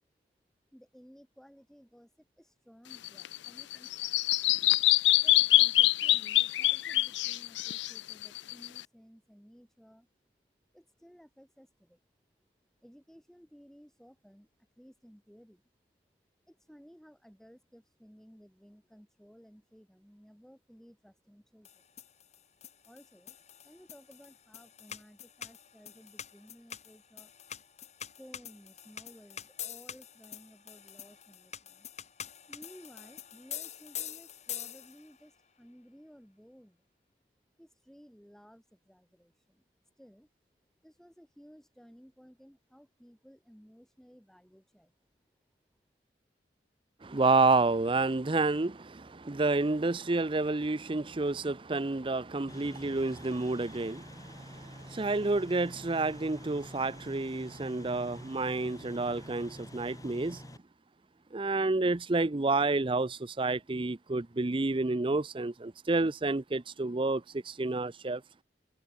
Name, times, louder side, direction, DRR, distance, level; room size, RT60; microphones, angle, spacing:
voice 1, 0.7-4.2 5.2-10.1 10.7-12.0 12.8-15.6 16.5-21.8 22.7-23.4 23.6-27.3 28.2-31.9 32.5-36.8 37.6-40.3 40.8-44.9, equal, 5° left, 4.9 m, -57 dB
Bird vocalization bird call bird song, 2.9-8.8, left 17 dB, 85° left, 0.4 m, -25 dB
sound 1, 21.7-35.2, left 10 dB, 40° left, 5.7 m, -45 dB
voice 2, 47.0-60.4 61.3-68.2, right 3 dB, 30° right, 0.6 m, -29 dB
sound 2, 52.5-60.6, left 1 dB, 20° left, 2.8 m, -49 dB
head